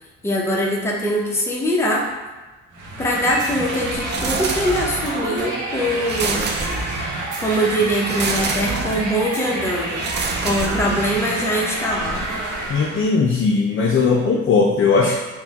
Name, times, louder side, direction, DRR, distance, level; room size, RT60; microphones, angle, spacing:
voice 1, 0.2-2.1 3.0-6.6 7.4-10.1 10.4-12.4, equal, 10° left, -3 dB, 0.7 m, -22 dB
sound 1, 2.7-13.1, right 1 dB, 85° right, 1.0 m, -28 dB
sound 2, 4.1-5.2 6.1-7.3 8.1-9.1 10.0-11.3, right 4 dB, 35° right, 0.4 m, -27 dB
voice 2, 12.7-15.2, left 4 dB, 45° left, -1 dB, 0.5 m, -18 dB
4.2 x 2.2 x 3.5 m, 1.2 s
cardioid pair, 90°, 30 cm